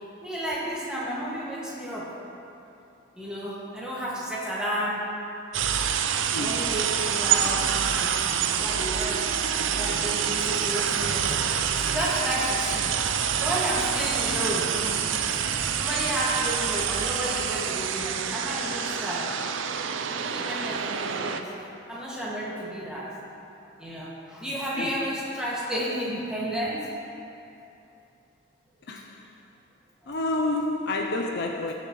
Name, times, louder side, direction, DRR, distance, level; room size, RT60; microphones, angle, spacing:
voice 1, 0.2-2.1 3.1-5.0 6.1-15.0 15.5-19.3 20.1-23.1 23.8-26.9 30.0-30.1, equal, 5° right, 1.9 m, -32 dB
sound 1, 5.5-21.4, right 8 dB, 75° right, 0.5 m, -27 dB
voice 2, 6.3-6.8 24.8-25.1 28.9-29.4 30.1-31.7, left 2 dB, 55° left, 0.6 m, -29 dB
19.0 x 6.6 x 3.1 m
head